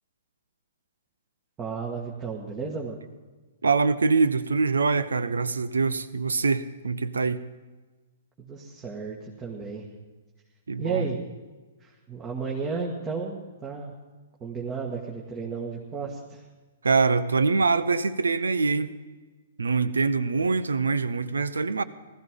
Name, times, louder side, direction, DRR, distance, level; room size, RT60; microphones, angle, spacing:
voice 1, 1.6-3.0 8.4-9.9 10.8-11.2 11.8-13.9 14.4-16.4, right 5 dB, 20° right, 1.7 m, -33 dB
voice 2, 3.6-7.5 10.7-11.1 16.8-18.9 19.6-21.8, right 4 dB, 75° right, 0.7 m, -24 dB
19.0 x 14.0 x 3.8 m
figure-of-eight pair, 115°, 0 cm